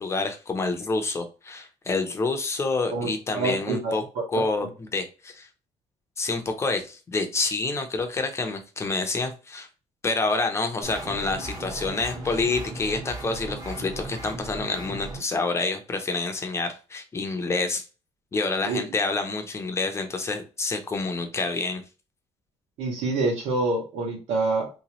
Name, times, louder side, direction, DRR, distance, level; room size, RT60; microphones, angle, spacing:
voice 1, 0.0-4.0 4.3-5.5 6.2-9.7 10.0-17.8 18.3-21.8, left 3 dB, 25° left, 6 dB, 0.7 m, -28 dB
voice 2, 3.3-4.2 18.6-18.8 22.8-24.7, right 3 dB, 85° right, 0 dB, 1.6 m, -26 dB
sound 1, 10.8-15.2, right 2 dB, 30° right, 1.2 m, -37 dB
3.2 x 3.0 x 2.9 m, 0.32 s
cardioid pair, 140°, 11 cm